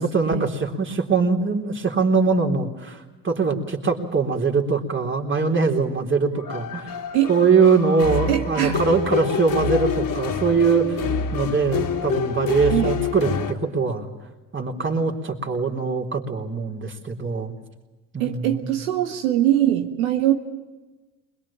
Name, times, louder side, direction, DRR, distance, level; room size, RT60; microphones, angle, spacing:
voice 1, 0.0-7.0 7.3-11.1 11.3-14.1 14.5-17.5 18.1-18.7, right 4 dB, 30° right, 2 dB, 3.8 m, -22 dB
sound 1, 6.3-13.5, left 6 dB, 55° left, 2.7 m, -27 dB
voice 2, 8.3-8.8 12.7-12.9 18.2-20.3, right 12 dB, 90° right, 5 dB, 1.6 m, -22 dB
22.0 x 22.0 x 8.7 m, 1.2 s
hypercardioid pair, 70°, 41 cm